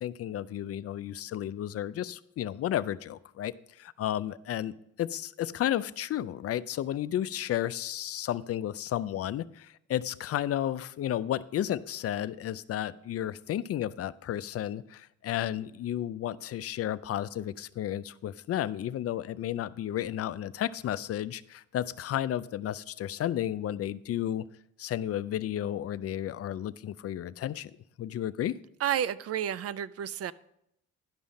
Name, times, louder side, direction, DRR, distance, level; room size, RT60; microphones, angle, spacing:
voice 1, 0.0-24.4 24.8-27.7 28.0-28.6, left 11 dB, 50° left, 0.5 m, -32 dB
voice 2, 28.8-30.3, right 10 dB, 55° right, 0.5 m, -31 dB
11.5 x 5.6 x 5.2 m
cardioid pair, 90°, 30 cm